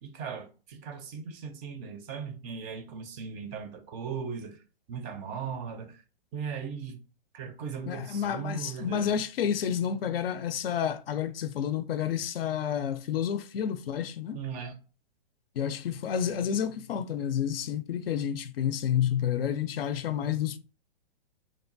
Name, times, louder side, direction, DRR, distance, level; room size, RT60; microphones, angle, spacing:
voice 1, 0.0-4.6 4.9-6.0 6.3-7.0 7.3-9.1 14.3-14.8, right 6 dB, 25° right, 0.5 m, -38 dB
voice 2, 7.9-14.4 15.6-20.6, left 9 dB, 70° left, 0.5 m, -30 dB
2.9 x 2.2 x 2.5 m
hypercardioid pair, 125°, 30 cm